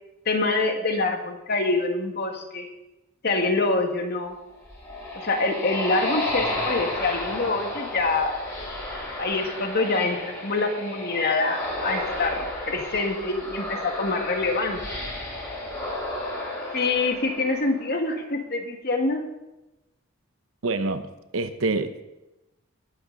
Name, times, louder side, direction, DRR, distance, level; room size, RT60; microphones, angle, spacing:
voice 1, 0.3-2.7 3.2-4.4 5.2-8.3 9.2-14.8 16.7-19.2, left 3 dB, 50° left, 3 dB, 1.7 m, -25 dB
sound 1, 4.5-18.0, left 1 dB, 15° left, 5.0 m, -32 dB
voice 2, 20.6-21.1 21.3-22.0, right 3 dB, 80° right, 10 dB, 0.9 m, -26 dB
20.0 x 8.6 x 3.9 m, 1.0 s
head